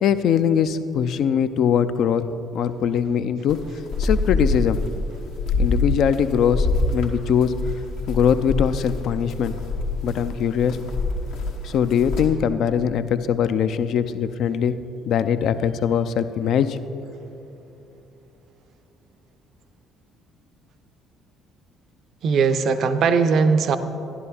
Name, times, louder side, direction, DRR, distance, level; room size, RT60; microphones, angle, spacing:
voice 1, 0.0-2.3 2.5-3.6 4.0-4.8 5.6-6.7 6.9-7.5 8.1-9.6 10.0-10.8 11.6-14.8 15.1-16.8, left 8 dB, 60° left, 12 dB, 0.4 m, -21 dB
sound 1, 3.5-12.3, left 3 dB, 75° left, 1.0 m, -25 dB
voice 2, 22.2-23.8, right 5 dB, 55° right, 11 dB, 0.5 m, -19 dB
12.5 x 11.0 x 2.8 m, 3.0 s
figure-of-eight pair, 50°, 0 cm